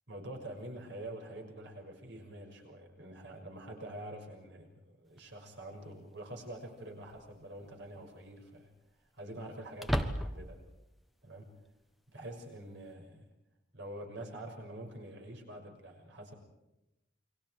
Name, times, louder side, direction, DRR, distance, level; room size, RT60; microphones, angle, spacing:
voice 1, 0.1-8.7 9.1-10.6 11.2-11.5 12.1-13.3 13.7-16.3, right 1 dB, 60° right, 2 dB, 6.3 m, -46 dB
sound 1, 5.2-5.3 7.1-7.5 7.9-8.0 9.8-10.7, equal, ahead, 1.3 m, -34 dB
29.5 x 23.5 x 4.8 m, 0.92 s
head